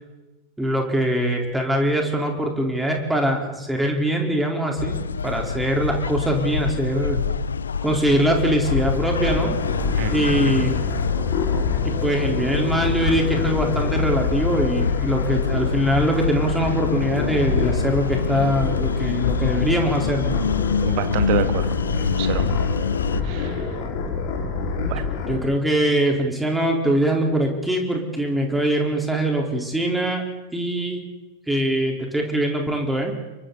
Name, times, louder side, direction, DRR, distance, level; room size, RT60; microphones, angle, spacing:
voice 1, 0.6-7.2 7.8-9.5 10.1-10.7 11.8-20.3 22.4-22.6 25.3-30.2 30.5-31.0 31.5-33.1, right 1 dB, 5° right, 1 dB, 4.3 m, -22 dB
sound 1, 4.8-23.2, left 6 dB, 70° left, 0.7 m, -26 dB
sound 2, 8.6-25.4, left 4 dB, 45° left, 5.0 m, -27 dB
voice 2, 9.9-10.7 20.8-21.7 22.1-22.6 23.2-23.7 24.9-25.0, right 13 dB, 45° right, 10 dB, 1.8 m, -28 dB
29.5 x 23.5 x 4.2 m, 1.1 s
figure-of-eight pair, 90°, 0 cm